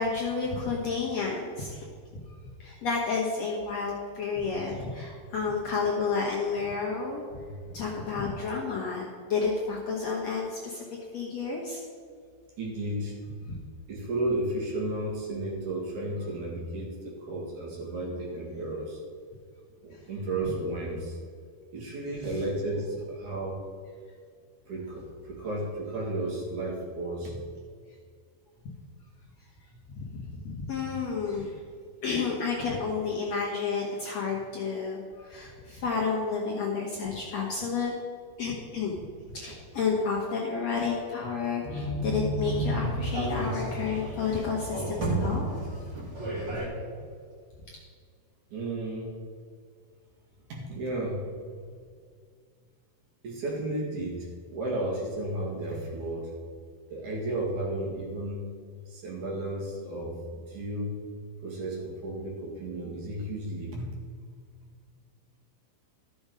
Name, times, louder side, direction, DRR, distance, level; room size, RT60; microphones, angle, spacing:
voice 1, 0.0-1.9 2.4-7.4 7.7-10.9 11.1-11.8 13.5-13.6 22.2-22.3 29.9-31.6 32.0-37.9 38.4-39.0 39.3-45.8, left 5 dB, 60° left, -3 dB, 2.0 m, -31 dB
voice 2, 12.6-13.2 13.9-19.0 19.8-21.2 21.7-23.6 24.7-27.4 48.5-49.1 50.5-51.3 51.7-51.8 53.2-56.3 56.9-58.5 58.9-61.0 61.4-63.9, right 1 dB, 55° right, -3 dB, 3.1 m, -33 dB
sound 1, 41.6-46.7, right 1 dB, 30° right, 2.7 m, -31 dB
13.5 x 7.0 x 5.2 m, 2.1 s
omnidirectional pair, 4.5 m